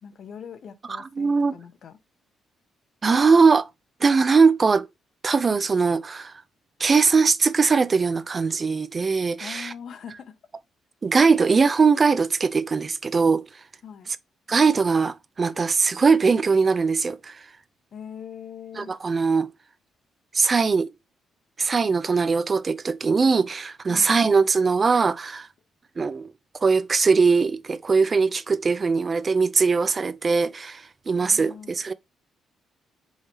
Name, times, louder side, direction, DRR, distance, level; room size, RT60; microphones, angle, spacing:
voice 1, 0.0-2.0 9.4-10.4 13.8-14.1 17.9-19.0 23.9-24.2 31.2-31.7, left 7 dB, 60° left, 0.9 m, -41 dB
voice 2, 1.2-1.6 3.0-3.7 4.0-4.9 5.2-6.3 6.8-9.7 11.0-13.5 14.5-17.5 18.8-19.5 20.3-20.9 21.6-25.5 26.0-26.3 26.6-31.9, right 4 dB, 35° right, 0.4 m, -21 dB
5.5 x 3.2 x 2.8 m
cardioid pair, 90°, 0 cm